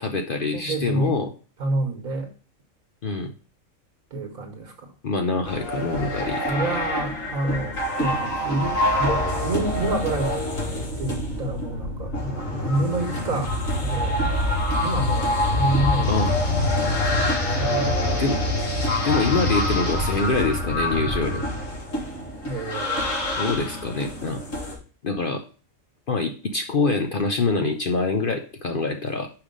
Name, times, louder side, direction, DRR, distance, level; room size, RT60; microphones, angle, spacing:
voice 1, 0.0-1.3 3.0-3.3 5.0-6.4 16.1-16.3 18.2-18.4 19.0-21.4 23.4-24.4 25.0-25.4 26.1-29.3, left 3 dB, 50° left, 5 dB, 0.7 m, -25 dB
voice 2, 0.5-1.2 1.6-2.3 4.1-4.9 6.0-10.4 11.0-14.2 14.8-16.1 16.7-18.1 22.4-23.5, right 1 dB, 75° right, 3 dB, 1.8 m, -29 dB
sound 1, 5.4-24.7, left 1 dB, 70° left, 2.6 m, -25 dB
5.6 x 5.0 x 5.2 m, 0.38 s
omnidirectional pair, 1.5 m